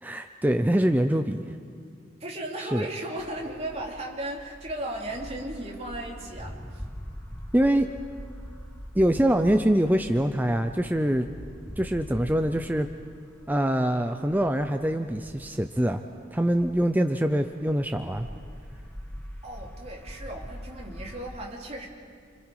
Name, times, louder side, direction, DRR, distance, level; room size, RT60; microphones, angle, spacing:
voice 1, 0.0-1.6 2.7-2.9 7.5-7.9 9.0-11.3 11.8-12.9 13.5-16.0 16.3-18.3, right 1 dB, 10° right, 7 dB, 0.6 m, -24 dB
voice 2, 2.2-6.8 19.4-21.9, right 1 dB, 35° right, -1 dB, 3.0 m, -36 dB
sound 1, 3.2-17.0 17.3-21.3, equal, 10° left, 2.2 m, -43 dB
30.0 x 25.5 x 4.9 m, 2.2 s
head